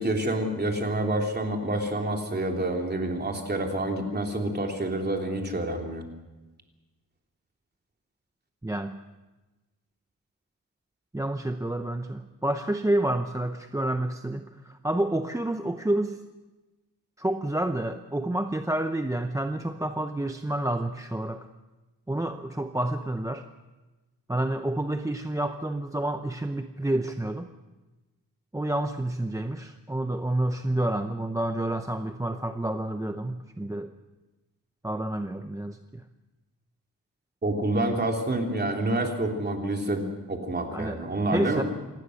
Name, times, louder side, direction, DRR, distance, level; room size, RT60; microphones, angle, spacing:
voice 1, 0.0-6.0 37.4-41.6, right 1 dB, 30° right, 2 dB, 3.2 m, -28 dB
voice 2, 8.6-9.0 11.1-16.2 17.2-21.5 22.1-23.5 24.3-27.5 28.5-33.9 34.8-36.0 40.7-41.1 41.3-41.6, right 1 dB, 10° right, 7 dB, 0.7 m, -29 dB
27.0 x 19.5 x 6.5 m, 1.1 s
wide cardioid pair, 160°, 35 cm